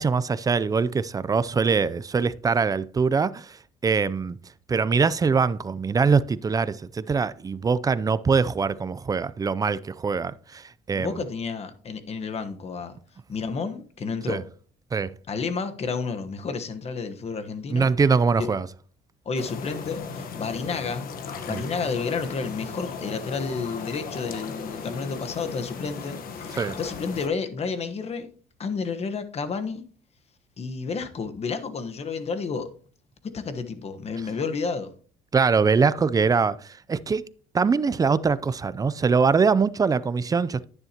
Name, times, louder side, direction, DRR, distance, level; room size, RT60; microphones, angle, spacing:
voice 1, 0.0-3.6 3.8-4.4 4.7-11.2 14.3-14.4 14.9-15.1 17.7-18.7 21.5-21.6 26.6-26.8 35.3-37.2 37.5-40.7, right 5 dB, 20° right, 0.5 m, -23 dB
voice 2, 10.9-13.0 13.3-14.4 15.3-17.9 18.4-18.5 19.2-21.1 21.4-28.3 28.6-29.8 30.6-32.7 33.2-34.9, left 5 dB, 40° left, 1.2 m, -31 dB
sound 1, 19.4-27.3, left 5 dB, 60° left, 1.2 m, -36 dB
10.5 x 9.7 x 2.9 m
cardioid pair, 110°, 17 cm